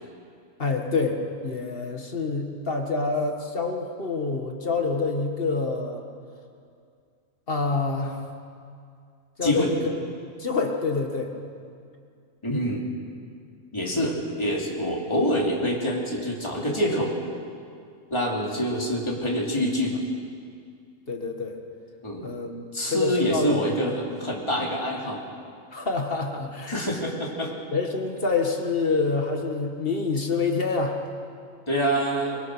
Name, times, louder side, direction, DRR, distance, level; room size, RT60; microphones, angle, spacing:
voice 1, 0.6-6.0 7.5-8.2 9.4-9.9 10.4-11.3 21.1-21.6 22.2-23.6 25.7-26.7 27.7-31.0, left 4 dB, 45° left, 3 dB, 2.0 m, -27 dB
voice 2, 9.4-9.7 12.4-12.8 13.7-17.1 18.1-20.0 22.0-22.3 22.7-25.2 26.7-27.5 31.7-32.4, equal, 20° left, -2 dB, 3.1 m, -26 dB
22.5 x 22.0 x 6.3 m, 2.3 s
omnidirectional pair, 1.4 m